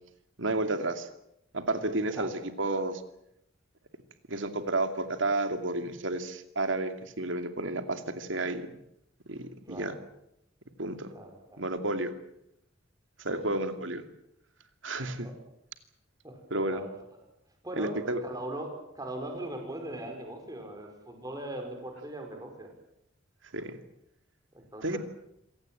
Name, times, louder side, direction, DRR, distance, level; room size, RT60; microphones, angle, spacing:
voice 1, 0.4-1.1 1.5-2.3 2.6-3.0 4.3-8.7 9.3-9.9 10.8-11.1 11.6-12.1 13.2-14.0 14.8-15.3 16.5-16.8 17.8-18.2 23.5-23.8 24.8-25.0, right 2 dB, 75° right, 8 dB, 2.6 m, -31 dB
voice 2, 1.9-2.3 9.7-10.0 11.1-11.6 13.3-13.7 15.0-15.3 16.2-17.2 17.6-22.7 24.5-25.0, right 1 dB, 20° right, 3 dB, 5.3 m, -40 dB
27.0 x 17.5 x 9.2 m, 0.80 s
head